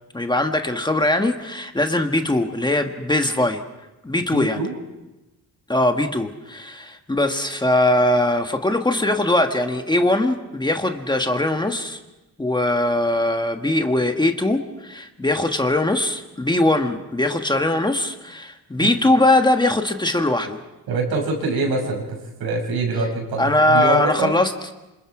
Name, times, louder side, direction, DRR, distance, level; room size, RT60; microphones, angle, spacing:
voice 1, 0.1-3.6 4.0-4.6 5.7-12.0 12.4-20.6 23.4-24.5, left 1 dB, 10° left, 5 dB, 1.4 m, -21 dB
voice 2, 4.3-4.7 18.8-18.9 20.9-24.4, right 3 dB, 85° right, 0 dB, 6.6 m, -25 dB
27.5 x 26.5 x 4.8 m, 1.0 s
cardioid pair, 125°, 37 cm